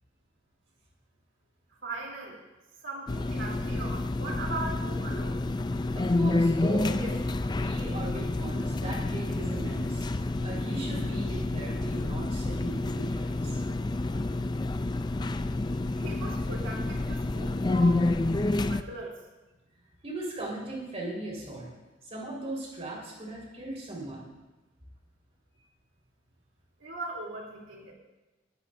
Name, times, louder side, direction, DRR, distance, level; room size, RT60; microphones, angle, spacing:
voice 1, 1.8-2.4 2.8-5.5 15.9-18.2 18.7-19.2 26.8-27.9, right 2 dB, 75° right, -2 dB, 3.3 m, -39 dB
sound 1, 3.1-18.8, left 2 dB, 20° left, 0.4 m, -29 dB
voice 2, 5.9-10.1 10.4-13.6 20.0-21.7 22.0-24.3, right 2 dB, 35° right, -3 dB, 4.5 m, -38 dB
18.5 x 13.5 x 2.7 m, 1.1 s
head